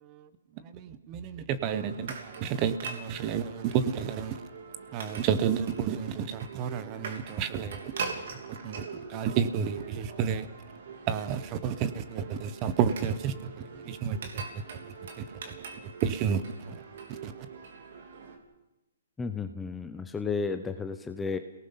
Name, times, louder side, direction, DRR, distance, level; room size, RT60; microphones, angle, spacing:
voice 1, 0.6-4.4 4.9-7.9 8.6-8.8 9.1-10.5 11.1-13.3 13.8-14.4 14.8-15.5 16.0-16.8 17.1-17.3, right 8 dB, 25° right, 13 dB, 1.0 m, -31 dB
sound 1, 1.7-18.4, right 5 dB, 55° right, 3.2 m, -42 dB
voice 2, 19.2-21.4, left 5 dB, 5° left, 8 dB, 0.7 m, -33 dB
28.0 x 18.5 x 5.8 m, 0.98 s
hypercardioid pair, 170°, 0 cm